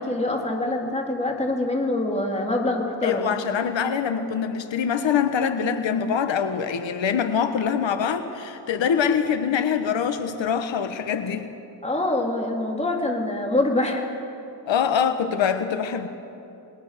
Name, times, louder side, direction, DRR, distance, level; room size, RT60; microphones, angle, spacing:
voice 1, 0.0-3.3 11.8-14.0, left 2 dB, 15° left, 0 dB, 3.2 m, -25 dB
voice 2, 3.0-11.5 14.7-16.1, left 7 dB, 90° left, 8 dB, 1.4 m, -24 dB
29.5 x 20.5 x 6.8 m, 2.8 s
wide cardioid pair, 125°, 43 cm